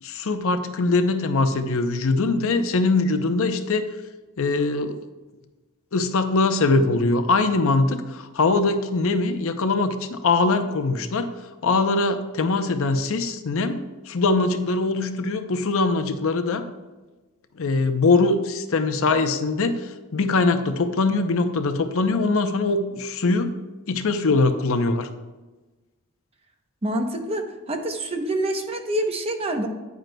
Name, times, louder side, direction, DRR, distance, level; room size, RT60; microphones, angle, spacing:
voice 1, 0.0-3.8 4.4-5.0 5.9-11.3 11.6-16.6 17.6-19.8 20.1-23.5 23.9-25.1, left 3 dB, 65° left, 8 dB, 0.6 m, -22 dB
voice 2, 26.8-29.7, right 1 dB, 25° right, 5 dB, 0.8 m, -26 dB
9.3 x 9.0 x 2.2 m, 1.2 s
head